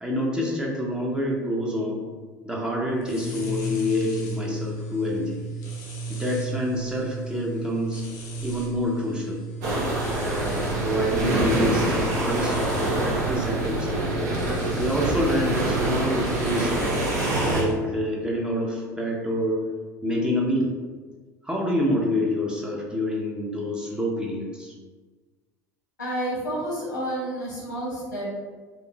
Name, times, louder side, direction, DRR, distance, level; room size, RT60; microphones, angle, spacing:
voice 1, 0.0-2.1 2.5-5.4 6.1-8.0 8.4-9.4 10.1-14.1 14.7-17.0 17.5-19.6 20.0-20.7 21.4-24.7, left 1 dB, 10° right, -2 dB, 0.7 m, -27 dB
sound 1, 3.0-17.7, right 3 dB, 65° left, 0.7 m, -35 dB
sound 2, 9.6-17.6, right 2 dB, 65° right, 0.8 m, -25 dB
voice 2, 26.0-28.3, right 1 dB, 85° left, -7 dB, 1.4 m, -30 dB
4.5 x 2.5 x 2.4 m, 1.4 s
figure-of-eight pair, 65°, 10 cm